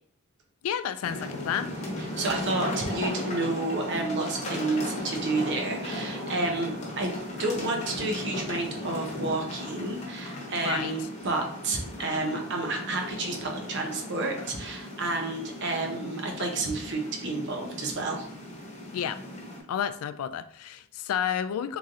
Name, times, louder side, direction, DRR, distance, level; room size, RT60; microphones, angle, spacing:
voice 1, 0.6-1.7 10.6-10.9 18.9-19.2 19.7-21.8, left 8 dB, 85° left, 11 dB, 0.3 m, -30 dB
sound 1, 1.0-19.6, left 1 dB, 35° left, 0.9 m, -36 dB
voice 2, 2.2-7.1 7.4-18.3, right 2 dB, 55° right, 2 dB, 0.8 m, -30 dB
3.7 x 3.1 x 2.7 m, 0.63 s
head